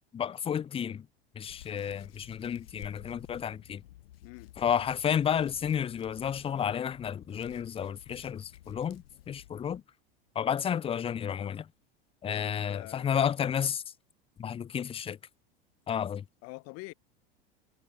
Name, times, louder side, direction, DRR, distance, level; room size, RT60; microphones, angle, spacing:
voice 1, 0.1-1.1 1.3-3.8 4.6-9.8 10.4-11.7 12.2-13.8 14.4-15.2 15.9-16.2, left 8 dB, 20° left, 0.5 m, -31 dB
Hands, 1.4-9.8, left 15 dB, 75° left, 2.5 m, -53 dB
voice 2, 4.2-4.5 12.3-13.1 16.4-16.9, left 26 dB, 55° left, 2.5 m, -46 dB
hypercardioid pair, 90°, 29 cm